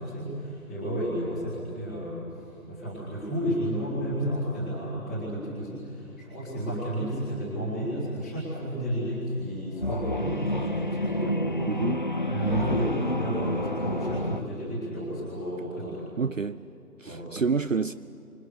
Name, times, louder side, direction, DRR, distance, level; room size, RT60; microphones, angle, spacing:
voice 1, 0.0-2.2 2.7-11.5 12.2-16.1 17.0-17.3, equal, ahead, 1.8 m, -32 dB
sound 1, 9.6-14.4, left 1 dB, 35° left, 0.8 m, -29 dB
voice 2, 11.7-12.0 16.2-16.6 17.0-17.9, right 5 dB, 60° right, 0.7 m, -28 dB
29.0 x 26.0 x 6.7 m
figure-of-eight pair, 165°, 45 cm